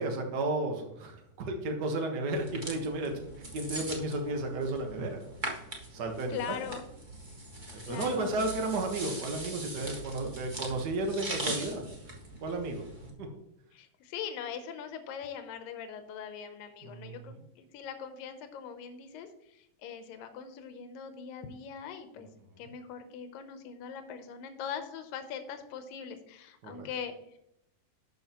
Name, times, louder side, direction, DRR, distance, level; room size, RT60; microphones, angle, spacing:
voice 1, 0.0-3.1 3.5-5.2 5.9-6.4 7.7-12.2 12.4-12.8 13.2-13.3 16.8-17.2 26.6-26.9, right 2 dB, 85° right, 3 dB, 0.9 m, -33 dB
sound 1, 2.3-13.1, right 2 dB, 70° right, 0.4 m, -41 dB
voice 2, 6.3-6.8 7.9-8.3 13.7-22.3 22.6-27.4, left 7 dB, 85° left, 8 dB, 2.5 m, -41 dB
12.0 x 6.8 x 2.9 m, 0.81 s
omnidirectional pair, 3.9 m